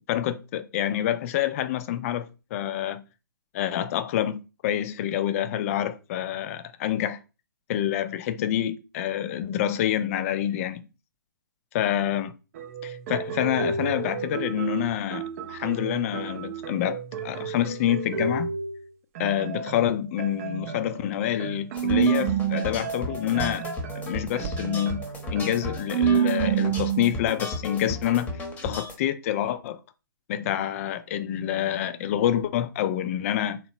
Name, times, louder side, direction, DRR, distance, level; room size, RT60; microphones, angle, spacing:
voice 1, 0.1-3.0 3.5-7.2 7.7-10.8 11.7-12.3 12.8-18.5 19.2-23.7 24.0-25.0 25.3-28.3 28.6-29.8 30.3-33.6, left 11 dB, 40° left, 0.4 m, -27 dB
sound 1, 12.5-18.8 19.2-27.2, right 8 dB, 40° right, 0.5 m, -30 dB
sound 2, 21.7-28.9, left 2 dB, 15° left, 0.8 m, -35 dB
3.4 x 2.9 x 2.9 m
figure-of-eight pair, 125°, 12 cm